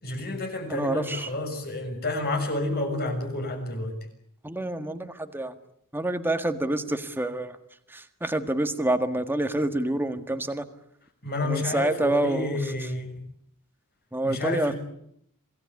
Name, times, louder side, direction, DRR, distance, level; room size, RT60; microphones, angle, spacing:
voice 1, 0.0-3.9 11.2-13.1 14.2-14.8, left 2 dB, 45° left, 5 dB, 6.6 m, -30 dB
voice 2, 0.7-1.3 4.4-5.6 5.9-7.6 7.9-10.6 11.4-12.9 14.1-14.7, right 1 dB, 10° right, 8 dB, 1.8 m, -27 dB
27.5 x 18.5 x 9.8 m, 0.71 s
head